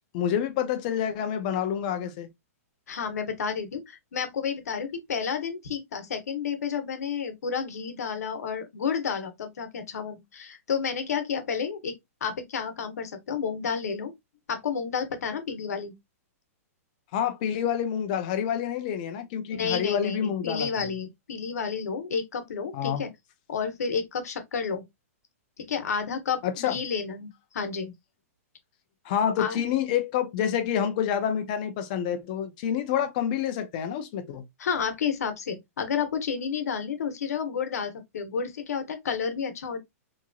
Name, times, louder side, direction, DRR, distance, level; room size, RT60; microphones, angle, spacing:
voice 1, 0.1-2.3 17.1-20.7 22.7-23.0 26.4-26.8 29.1-34.4, left 9 dB, 30° left, 0.4 m, -28 dB
voice 2, 2.9-12.0 12.2-14.1 14.5-15.9 19.5-23.1 23.5-24.8 25.6-27.9 29.4-29.6 34.6-39.8, left 6 dB, 85° left, 0.9 m, -31 dB
2.9 x 2.5 x 2.3 m
hypercardioid pair, 165°, 8 cm